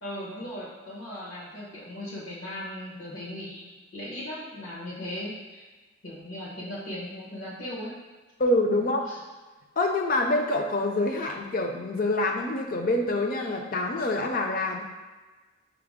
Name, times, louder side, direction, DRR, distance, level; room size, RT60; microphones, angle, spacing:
voice 1, 0.0-3.6 3.9-5.6 6.0-7.9 9.1-9.2, left 1 dB, 80° left, -5 dB, 1.0 m, -37 dB
voice 2, 8.4-9.0 9.8-14.8, left 2 dB, 40° left, 2 dB, 0.4 m, -26 dB
5.7 x 2.0 x 3.5 m, 1.3 s
head